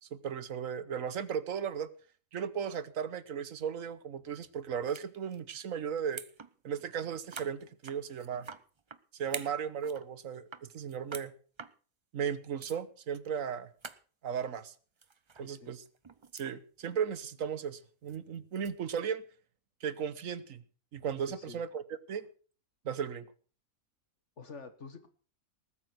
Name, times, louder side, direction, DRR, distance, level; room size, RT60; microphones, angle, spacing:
voice 1, 0.0-1.9 2.3-6.2 6.6-8.5 9.2-11.3 12.1-13.7 14.2-14.7 15.4-15.8 16.3-19.2 19.8-20.6 20.9-21.8 22.1-22.2 22.8-23.3, right 7 dB, 70° right, 1.4 m, -36 dB
sound 1, 4.8-5.1 5.3-5.6 6.0-6.5 6.8-6.9 7.3-9.0 9.3-10.1 10.3-11.3 11.6-11.7 12.3-12.4 12.6-12.8 13.1-13.3 13.5-13.6 13.8-14.0 15.0-15.5 15.9-16.5 16.9-17.1 18.1-19.0, right 5 dB, 35° right, 0.5 m, -46 dB
voice 2, 15.4-15.7 21.3-21.6 24.4-25.1, left 4 dB, 60° left, 1.9 m, -48 dB
19.5 x 8.5 x 6.1 m
omnidirectional pair, 1.4 m